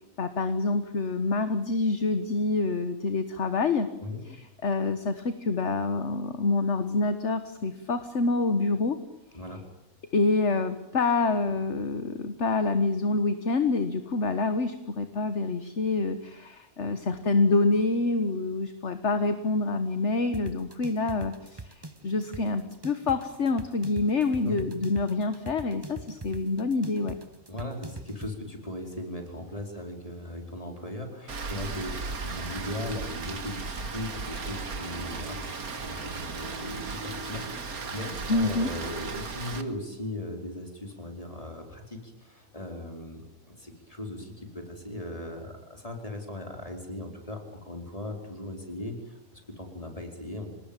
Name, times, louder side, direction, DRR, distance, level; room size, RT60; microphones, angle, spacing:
voice 1, 0.2-3.9 4.3-9.0 10.1-27.1 38.3-38.7, left 3 dB, 55° left, 10 dB, 1.7 m, -27 dB
voice 2, 9.3-9.6 24.4-24.7 27.5-35.5 35.8-50.5, left 1 dB, 25° left, 4 dB, 4.8 m, -38 dB
sound 1, 20.3-28.3, right 2 dB, 20° right, 1.1 m, -43 dB
Rain, 31.3-39.6, right 4 dB, 85° right, 2.4 m, -36 dB
26.0 x 20.0 x 9.0 m, 0.85 s
omnidirectional pair, 1.5 m